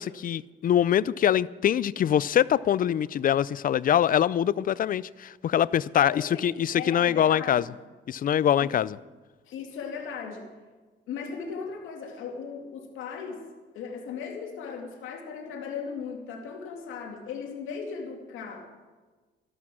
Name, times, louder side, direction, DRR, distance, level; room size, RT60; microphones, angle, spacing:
voice 1, 0.0-7.6 8.1-9.0, left 10 dB, 45° left, 0.4 m, -24 dB
voice 2, 6.0-6.4 6.7-7.7 8.6-8.7 9.5-10.5 11.1-13.4 13.7-18.9, left 6 dB, 85° left, 2.5 m, -37 dB
13.0 x 12.0 x 6.2 m
cardioid pair, 90°, 20 cm